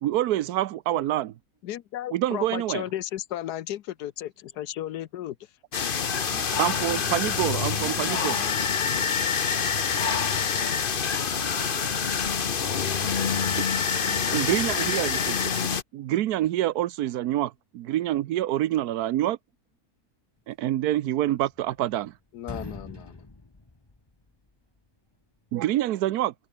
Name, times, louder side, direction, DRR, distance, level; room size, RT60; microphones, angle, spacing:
voice 1, 0.0-1.3 2.1-2.8 6.6-8.4 14.3-15.4 15.7-19.4 20.5-22.1 25.5-26.3, right 13 dB, 80° right, 1.2 m, -26 dB
voice 2, 1.6-5.4 22.3-23.2, left 12 dB, 90° left, 1.3 m, -34 dB
sound 1, 5.7-15.8, left 6 dB, 40° left, 1.1 m, -26 dB
voice 3, 6.3-12.2 12.8-13.5 14.1-15.3, right 2 dB, 60° right, 5.5 m, -46 dB
sound 2, 21.2-22.1 22.4-24.5, left 2 dB, 15° left, 1.2 m, -42 dB
omnidirectional pair, 1.7 m